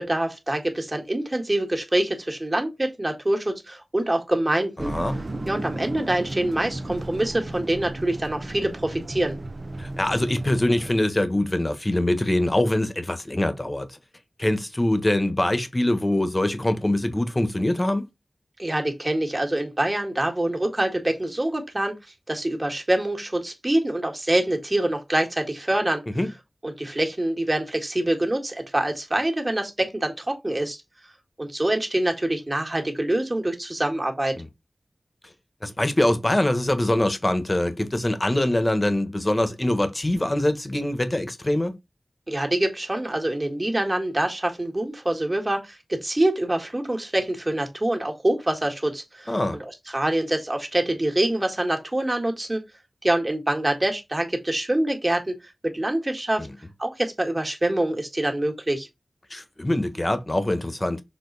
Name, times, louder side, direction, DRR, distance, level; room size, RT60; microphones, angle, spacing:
voice 1, 0.0-4.9 5.5-9.4 18.6-22.0 22.3-26.0 26.6-30.8 31.4-34.3 42.3-52.6 53.0-55.4 55.7-56.5 56.8-58.9, right 1 dB, 25° right, 1.9 m, -25 dB
voice 2, 4.8-5.2 9.8-14.0 14.4-18.1 26.2-26.3 34.4-34.5 35.6-41.7 49.3-49.6 56.4-56.6 59.3-61.0, left 1 dB, 25° left, 1.2 m, -23 dB
sound 1, 4.8-10.9, right 2 dB, 50° right, 0.9 m, -34 dB
6.8 x 3.9 x 4.0 m
wide cardioid pair, 85°, 0 cm